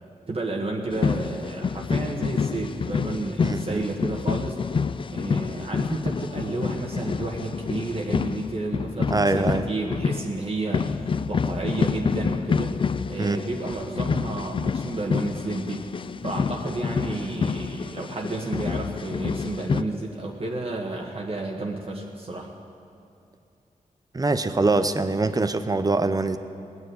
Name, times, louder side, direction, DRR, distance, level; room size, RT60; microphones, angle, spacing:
voice 1, 0.3-12.8 13.1-15.9 16.2-22.5, right 2 dB, 40° right, -1 dB, 1.4 m, -31 dB
sound 1, 0.9-19.8, left 5 dB, 35° left, 0.4 m, -28 dB
voice 2, 3.4-3.8 9.1-9.6 13.2-13.4 24.1-26.4, right 3 dB, 25° right, 10 dB, 0.8 m, -23 dB
18.5 x 6.9 x 9.3 m, 2.6 s
cardioid pair, 75°, 14 cm